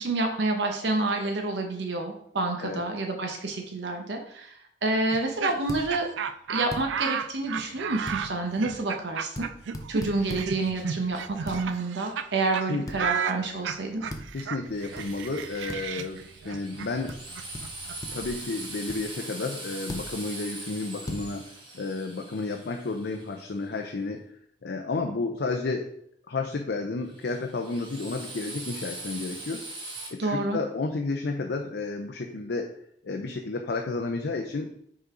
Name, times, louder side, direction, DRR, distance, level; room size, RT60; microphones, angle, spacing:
voice 1, 0.0-6.1 6.5-9.4 9.9-14.0 30.2-30.6, right 2 dB, 70° right, 3 dB, 0.8 m, -28 dB
Laughter, 5.1-12.3 12.5-12.7 13.0-18.7, right 7 dB, 90° right, 0.4 m, -34 dB
sound 1, 5.7-5.9 6.7-6.9 8.1-8.2 9.4-9.5 9.7-10.5 11.5-11.6 12.9-13.0 14.1-14.3 15.0-15.1 15.7-15.8 17.1-17.2 17.5-17.7 18.0-18.3 18.9-19.0 19.9-20.1 21.1-21.2, left 1 dB, 20° left, 0.6 m, -36 dB
voice 2, 12.7-13.1 14.3-17.2 18.1-24.2 24.6-25.9 26.3-29.6 30.1-32.7 33.0-34.8, left 3 dB, 65° left, 3 dB, 0.5 m, -32 dB
Drill, 14.7-23.7 27.1-30.1, right 2 dB, 25° right, 1.3 m, -41 dB
5.4 x 3.9 x 4.8 m, 0.69 s
head